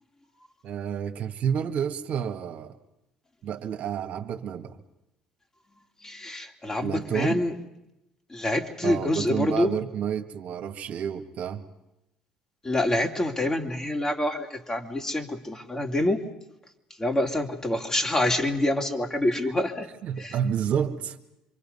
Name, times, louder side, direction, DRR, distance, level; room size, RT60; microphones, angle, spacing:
voice 1, 0.6-2.7 3.4-4.8 6.8-7.4 8.8-11.6 19.4-19.5 20.0-21.2, right 8 dB, 60° right, 5 dB, 1.7 m, -30 dB
voice 2, 6.0-7.5 8.3-9.8 12.6-16.2 17.0-19.9 20.2-20.3, left 1 dB, 20° left, 3 dB, 2.9 m, -26 dB
26.5 x 23.5 x 5.6 m, 0.91 s
supercardioid pair, 70°, 3 cm